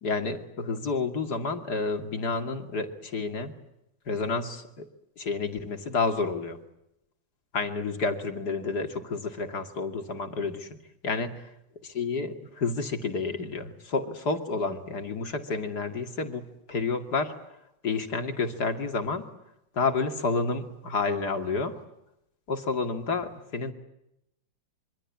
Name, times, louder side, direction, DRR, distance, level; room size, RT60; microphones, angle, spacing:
voice 1, 0.0-3.5 4.1-4.9 5.2-6.6 7.5-10.7 11.0-11.3 11.9-17.3 17.8-19.3 19.8-21.8 22.5-23.7, left 4 dB, 55° left, 7 dB, 2.9 m, -30 dB
27.0 x 25.0 x 8.6 m, 0.85 s
omnidirectional pair, 2.1 m